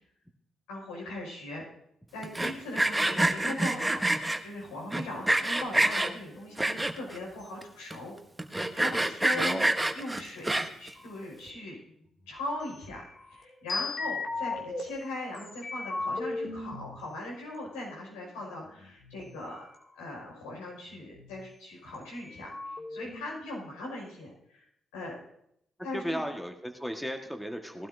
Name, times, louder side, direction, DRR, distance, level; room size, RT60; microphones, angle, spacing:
voice 1, 0.7-1.6 2.1-8.1 8.4-9.6 9.9-11.8 12.3-19.7 19.9-24.6 24.9-25.2 25.8-26.2, left 1 dB, 85° left, -3 dB, 5.5 m, -39 dB
Sawing, 2.2-4.4 4.9-6.1 6.6-7.2 7.6-7.7 7.9-8.0 8.4-10.9, right 1 dB, 15° right, 1.1 m, -27 dB
sound 1, 6.3-7.0 10.7-12.0 12.9-14.8 15.3-17.0 17.8-19.2 19.7-19.8 20.1-21.4 21.9-22.0 22.2-23.2, left 3 dB, 50° left, 2.4 m, -37 dB
voice 2, 9.3-9.7 25.9-27.9, equal, ahead, 4 dB, 1.6 m, -35 dB
18.5 x 12.5 x 2.7 m, 0.74 s
hypercardioid pair, 50°, 0 cm